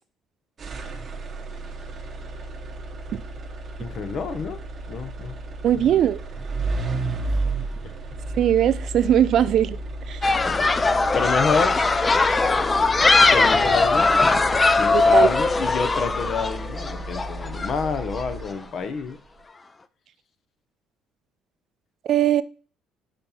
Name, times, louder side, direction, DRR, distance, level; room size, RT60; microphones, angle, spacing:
sound 1, 0.6-18.9, right 2 dB, 35° right, 0.9 m, -33 dB
voice 1, 3.8-4.6 4.9-5.3 5.7-5.9 11.1-11.8 13.2-14.4 14.8-19.2, left 5 dB, 45° left, 0.8 m, -28 dB
voice 2, 5.6-6.2 8.4-9.8 10.1-10.2 14.9-15.3 22.0-22.4, right 10 dB, 55° right, 0.4 m, -20 dB
sound 2, 10.2-18.2, left 3 dB, 20° left, 0.4 m, -20 dB
5.2 x 4.4 x 5.6 m
cardioid pair, 140°, 0 cm